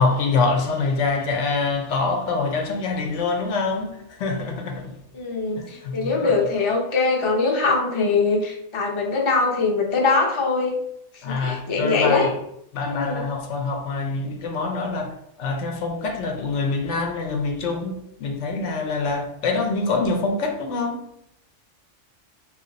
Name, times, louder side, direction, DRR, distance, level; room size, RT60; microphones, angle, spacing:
voice 1, 0.0-5.0 5.6-6.4 11.2-12.4 12.7-21.0, left 3 dB, 80° left, 0.9 m, -25 dB
voice 2, 5.1-10.7 11.3-12.3 12.9-13.3, left 4 dB, 35° left, 0.5 m, -22 dB
3.0 x 2.5 x 3.9 m
omnidirectional pair, 1.2 m